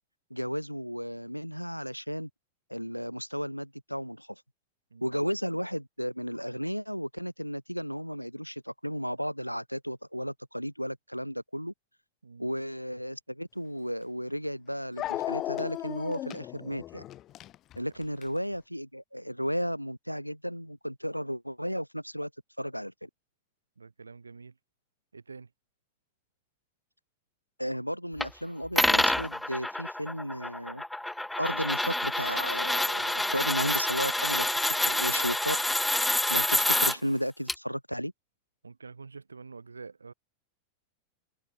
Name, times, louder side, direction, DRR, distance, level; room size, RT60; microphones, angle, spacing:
voice 1, 0.3-2.3 2.7-4.4 5.0-11.7 12.4-17.1 17.8-22.3 22.6-23.1 27.6-30.8 31.4-35.7 36.3-38.1, equal, 90° left, 2.1 m, -34 dB
voice 2, 4.9-5.2 12.2-12.5 23.8-24.5 25.1-25.5 38.6-40.1, right 4 dB, 75° right, 5.5 m, -47 dB
Dog, 13.9-14.0 15.0-18.4, left 13 dB, 35° left, 1.2 m, -35 dB
sound 1, 28.2-28.3 28.8-36.9 37.5-37.6, left 1 dB, 5° left, 0.8 m, -27 dB
figure-of-eight pair, 90°, 0 cm